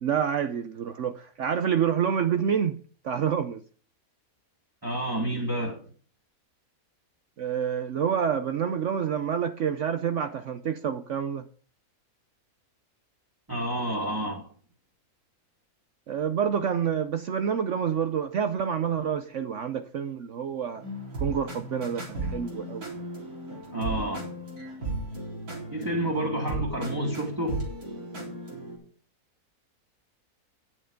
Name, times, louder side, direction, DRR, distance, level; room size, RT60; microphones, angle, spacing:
voice 1, 0.0-2.8 3.0-3.6 7.4-11.5 16.1-20.8 21.2-22.9, right 8 dB, 60° right, 1.0 m, -28 dB
voice 2, 4.8-5.8 13.5-14.5 23.7-24.3 25.7-27.7, right 1 dB, 15° right, 2.0 m, -29 dB
sound 1, 20.7-28.8, right 2 dB, 85° right, 4.3 m, -36 dB
10.0 x 7.8 x 5.1 m
omnidirectional pair, 1.5 m